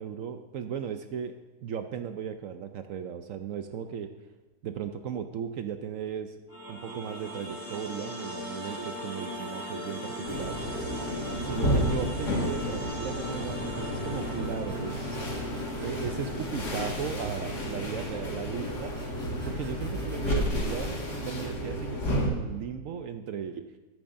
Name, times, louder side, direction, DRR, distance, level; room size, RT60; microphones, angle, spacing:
voice 1, 0.0-1.3 1.6-4.1 4.6-6.4 6.7-10.6 11.4-15.2 15.8-18.9 19.5-23.6, right 8 dB, 70° right, 8 dB, 0.8 m, -36 dB
sound 1, 6.5-17.6, equal, 15° right, 1.4 m, -38 dB
sound 2, 10.2-22.3, equal, 75° left, 2.4 m, -32 dB
sound 3, 14.7-18.1 18.5-21.5, left 1 dB, 5° left, 3.5 m, -47 dB
13.0 x 12.5 x 2.6 m, 1.2 s
omnidirectional pair, 1.8 m